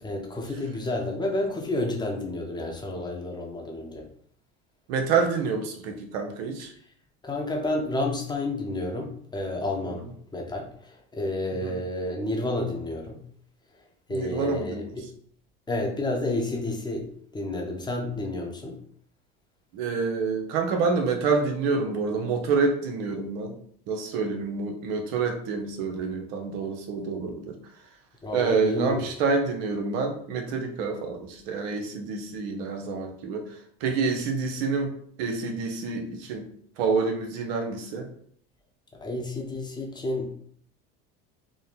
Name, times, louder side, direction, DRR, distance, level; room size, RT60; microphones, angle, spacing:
voice 1, 0.0-4.1 7.2-10.0 10.3-13.2 14.1-15.1 15.7-18.8 28.2-29.1 38.9-40.3, left 2 dB, 15° left, 1 dB, 1.0 m, -30 dB
voice 2, 4.9-6.7 11.6-11.7 14.1-14.9 19.7-23.5 23.9-27.6 28.3-33.4 33.8-34.9 35.2-36.5 36.8-38.1, right 4 dB, 75° right, 4 dB, 0.9 m, -27 dB
3.6 x 2.2 x 4.0 m, 0.62 s
supercardioid pair, 90°, 30 cm